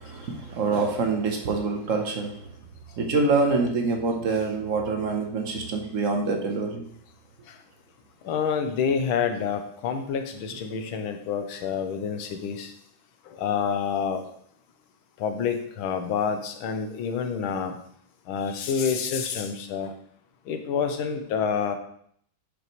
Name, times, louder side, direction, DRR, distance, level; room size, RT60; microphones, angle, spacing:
voice 1, 0.0-2.5 3.0-6.8, right 3 dB, 50° right, 3 dB, 1.0 m, -26 dB
voice 2, 8.2-12.7 13.2-14.2 15.2-17.8 18.3-19.9 20.5-21.8, left 6 dB, 75° left, 6 dB, 1.6 m, -28 dB
8.5 x 5.2 x 3.1 m, 0.66 s
omnidirectional pair, 2.3 m